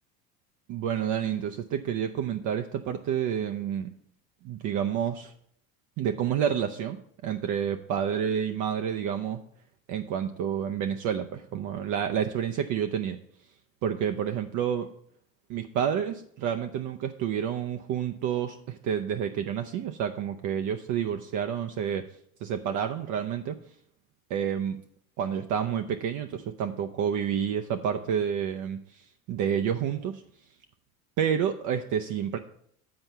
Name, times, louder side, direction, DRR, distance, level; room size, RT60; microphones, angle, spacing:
voice 1, 0.7-3.9 4.4-5.3 6.0-9.4 9.9-13.2 13.8-14.9 15.5-22.0 22.4-23.6 24.3-24.8 25.2-30.2 31.2-32.4, right 8 dB, 45° right, 6 dB, 0.6 m, -29 dB
7.7 x 4.4 x 6.8 m, 0.65 s
hypercardioid pair, 75°, 42 cm